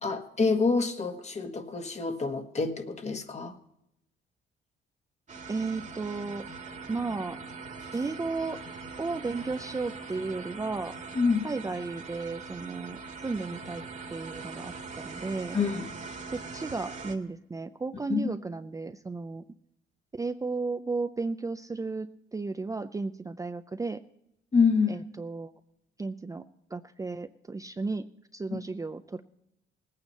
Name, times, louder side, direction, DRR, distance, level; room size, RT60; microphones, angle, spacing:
voice 1, 0.0-3.5 11.1-11.5 15.5-15.9 18.1-18.3 24.5-25.0 28.5-28.6, left 4 dB, 35° left, 6 dB, 1.5 m, -27 dB
sound 1, 5.3-17.1, right 4 dB, 40° right, 1.7 m, -42 dB
voice 2, 5.5-6.5 6.9-7.4 7.9-8.6 9.0-10.9 11.4-13.8 14.1-15.6 16.3-19.4 20.1-24.0 24.9-25.5 26.0-26.4 26.7-28.1 28.3-29.2, right 3 dB, 15° right, 9 dB, 0.5 m, -34 dB
19.0 x 9.0 x 4.2 m, 0.80 s
cardioid pair, 90°, 20 cm